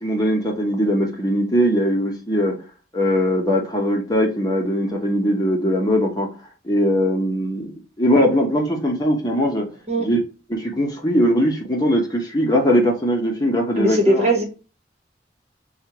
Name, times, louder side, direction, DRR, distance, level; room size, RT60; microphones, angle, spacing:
voice 1, 0.0-2.5 2.9-6.3 6.6-9.7 10.0-10.2 10.5-14.3, equal, 20° left, 1.0 m, -20 dB
voice 2, 13.8-14.4, equal, 35° right, 1.4 m, -19 dB
6.3 x 2.4 x 2.9 m
head